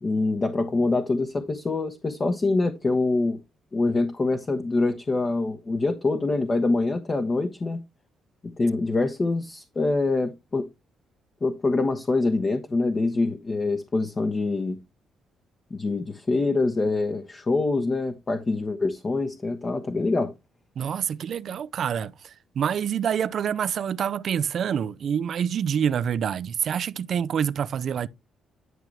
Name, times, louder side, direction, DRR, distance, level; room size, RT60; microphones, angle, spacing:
voice 1, 0.0-3.4 3.7-7.8 8.4-10.7 11.4-14.8 15.7-20.3, left 3 dB, 30° left, 1.1 m, -25 dB
voice 2, 20.8-28.1, right 8 dB, 60° right, 0.5 m, -27 dB
11.0 x 6.0 x 3.2 m
cardioid pair, 90°, 0 cm